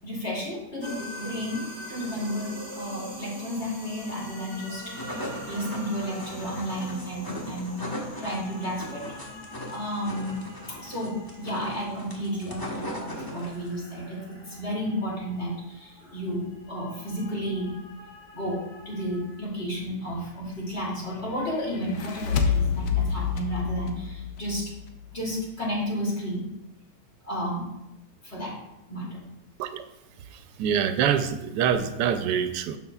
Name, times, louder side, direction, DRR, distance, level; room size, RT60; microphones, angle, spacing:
voice 1, 0.0-7.8 8.2-9.0 9.7-10.4 10.7-17.7 18.3-24.7 25.1-26.4 27.2-27.7 28.2-28.6 28.9-29.2, equal, 35° left, -5 dB, 2.8 m, -32 dB
sound 1, 0.8-19.4, equal, 5° right, 1.7 m, -44 dB
sound 2, 4.7-13.8, equal, 15° left, 1.0 m, -38 dB
sound 3, 21.7-25.1, left 6 dB, 85° left, 1.4 m, -28 dB
voice 2, 30.6-32.8, right 8 dB, 85° right, 9 dB, 1.2 m, -25 dB
12.0 x 5.6 x 2.3 m, 0.91 s
omnidirectional pair, 1.8 m